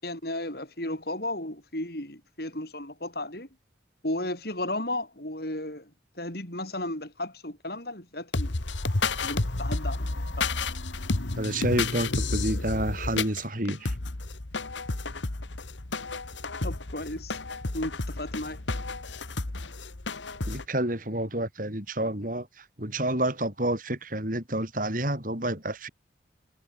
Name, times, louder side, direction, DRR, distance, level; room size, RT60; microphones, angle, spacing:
voice 1, 0.0-3.5 4.0-5.9 6.2-8.6 9.2-10.5 16.6-17.4 17.7-18.6, left 1 dB, 55° left, 7.3 m, -34 dB
sound 1, 8.3-20.6, left 3 dB, 80° left, 1.6 m, -31 dB
voice 2, 11.4-13.9 20.5-25.9, right 1 dB, 45° right, 6.0 m, -29 dB
head